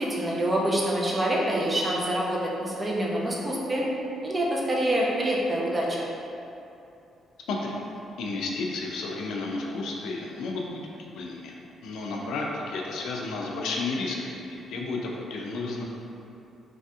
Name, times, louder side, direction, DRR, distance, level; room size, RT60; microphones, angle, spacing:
voice 1, 0.0-3.8 4.2-6.0, right 1 dB, 25° right, -4 dB, 0.5 m, -26 dB
voice 2, 7.5-7.8 8.2-10.8 11.1-11.5 11.8-15.8, left 3 dB, 80° left, -1 dB, 0.4 m, -32 dB
3.3 x 2.6 x 2.3 m, 2.8 s
cardioid pair, 90°, 0 cm